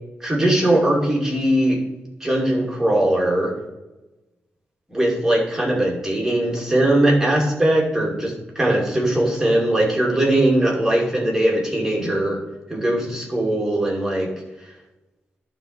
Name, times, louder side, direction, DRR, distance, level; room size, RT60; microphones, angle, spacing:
voice 1, 0.2-1.8 2.2-3.5 4.9-12.4 12.7-14.3, right 1 dB, 10° right, -3 dB, 2.6 m, -20 dB
11.0 x 4.0 x 6.6 m, 1.0 s
wide cardioid pair, 150°, 4 cm